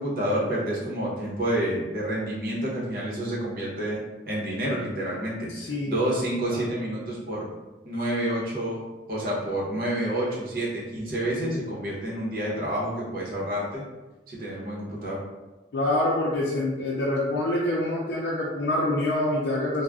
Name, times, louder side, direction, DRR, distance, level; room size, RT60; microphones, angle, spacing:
voice 1, 0.0-4.0 4.3-7.5 7.8-13.8 14.3-15.2, right 1 dB, 55° right, -5 dB, 0.8 m, -29 dB
voice 2, 5.5-6.0 6.5-6.6 15.7-19.8, left 1 dB, 80° left, -5 dB, 0.4 m, -26 dB
2.3 x 2.1 x 3.4 m, 1.1 s
head